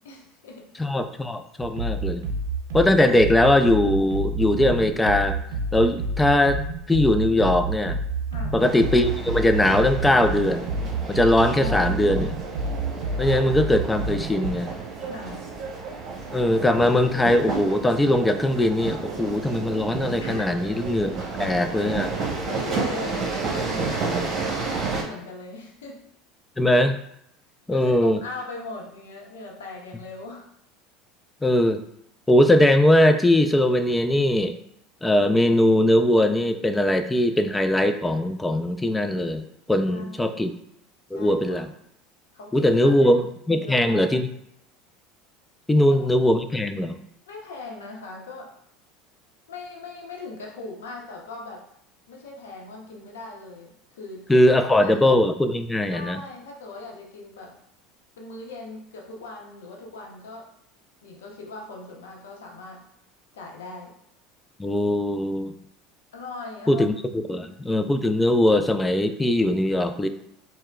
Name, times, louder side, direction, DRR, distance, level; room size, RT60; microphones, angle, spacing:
voice 1, 0.0-0.7 8.3-8.7 11.5-12.4 15.0-15.5 20.2-20.6 21.7-21.8 22.5-26.0 27.7-30.5 39.8-40.6 41.1-41.6 42.3-43.3 43.5-44.1 45.8-46.1 47.3-48.5 49.5-51.6 52.1-54.2 54.5-55.1 55.9-57.6 58.2-60.5 61.0-62.8 63.3-63.9 66.1-66.8 67.3-67.7, left 3 dB, 85° left, 0 dB, 0.7 m, -39 dB
voice 2, 0.8-2.2 2.7-5.4 5.7-6.6 6.9-8.0 8.5-10.7 11.1-12.2 13.2-14.7 16.3-22.1 26.6-27.0 27.7-28.2 31.4-31.8 32.3-34.5 35.0-40.5 41.1-41.7 42.5-44.3 45.7-47.0 54.3-56.2 64.6-65.5 66.7-66.9 67.3-70.1, left 1 dB, 10° left, 9 dB, 0.3 m, -20 dB
sound 1, 1.6-14.5, right 2 dB, 80° right, 0.5 m, -29 dB
sound 2, 8.6-25.0, right 4 dB, 45° right, 0.9 m, -31 dB
4.4 x 2.1 x 2.3 m, 0.75 s
hypercardioid pair, 90°, 0 cm